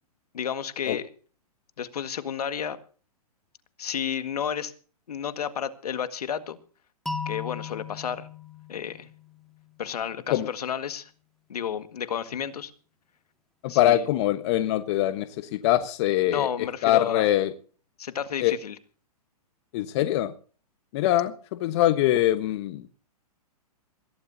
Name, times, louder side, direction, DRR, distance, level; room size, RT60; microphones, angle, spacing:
voice 1, 0.3-1.1 1.8-2.8 3.8-4.7 5.1-6.6 7.3-8.3 8.7-9.1 9.8-11.1 11.5-12.7 13.7-14.1 16.3-17.3 18.0-18.8, left 8 dB, 75° left, 1.8 m, -31 dB
sound 1, 7.1-10.0, left 5 dB, ahead, 2.0 m, -37 dB
voice 2, 13.6-15.3 15.5-16.5 16.8-17.5 18.4-18.5 19.7-20.3 20.9-22.8, left 13 dB, 45° left, 1.2 m, -23 dB
21.0 x 16.0 x 2.8 m
hypercardioid pair, 125°, 20 cm